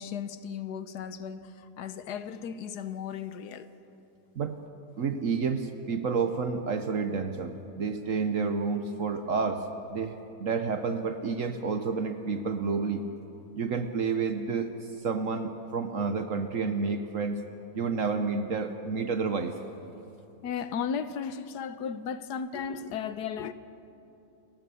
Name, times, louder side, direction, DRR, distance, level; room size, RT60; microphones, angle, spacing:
voice 1, 0.0-3.7 20.4-23.5, left 7 dB, 75° left, 12 dB, 1.4 m, -35 dB
voice 2, 5.0-13.1 13.6-17.4 17.7-19.6, right 5 dB, 55° right, 8 dB, 1.2 m, -30 dB
29.0 x 15.5 x 7.0 m, 2.9 s
omnidirectional pair, 1.7 m